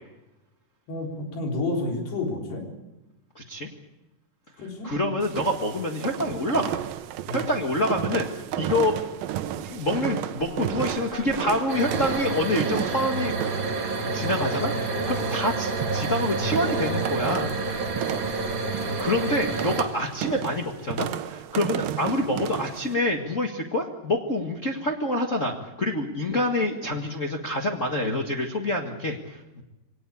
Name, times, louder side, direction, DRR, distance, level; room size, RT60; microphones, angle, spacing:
voice 1, 0.9-2.7 4.6-4.9 7.3-7.4, left 2 dB, 90° left, 1 dB, 6.2 m, -30 dB
voice 2, 3.3-3.7 4.6-6.8 7.3-9.0 9.6-13.3 14.1-17.5 18.8-29.6, left 1 dB, 55° left, 1 dB, 0.8 m, -27 dB
sound 1, 5.2-22.9, right 11 dB, 70° right, 2.4 m, -33 dB
sound 2, 10.4-19.3, equal, 5° right, 5.4 m, -42 dB
sound 3, 11.7-19.8, right 3 dB, 35° right, 2.8 m, -29 dB
24.0 x 18.5 x 8.5 m, 1.0 s
omnidirectional pair, 4.6 m